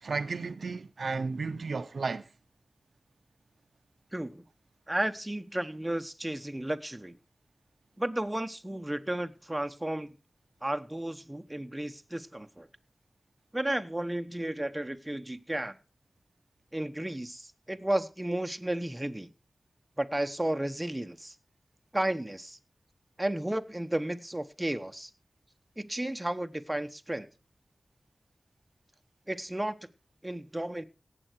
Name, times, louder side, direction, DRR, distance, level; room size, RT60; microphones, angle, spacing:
voice 1, 0.0-2.3, right 4 dB, 85° right, 0.7 m, -33 dB
voice 2, 4.1-4.4 4.9-7.2 8.0-10.1 10.6-12.7 13.5-15.8 16.7-19.3 20.0-21.3 21.9-22.6 23.2-25.1 25.8-27.3 29.3-29.9 30.2-30.8, right 1 dB, 15° right, 1.0 m, -33 dB
17.5 x 7.8 x 4.5 m
wide cardioid pair, 65°, 0 cm